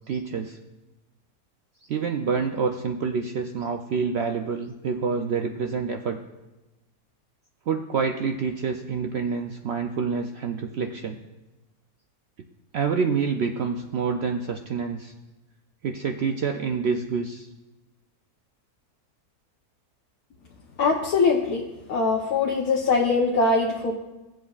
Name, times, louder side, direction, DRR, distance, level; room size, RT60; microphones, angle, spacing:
voice 1, 0.1-0.6 1.9-6.2 7.7-11.2 12.7-15.1 15.8-17.5, right 5 dB, 80° right, 4 dB, 0.5 m, -27 dB
voice 2, 20.8-21.6 21.9-23.9, left 4 dB, 70° left, -1 dB, 1.3 m, -22 dB
16.5 x 7.6 x 2.4 m, 1.1 s
omnidirectional pair, 1.6 m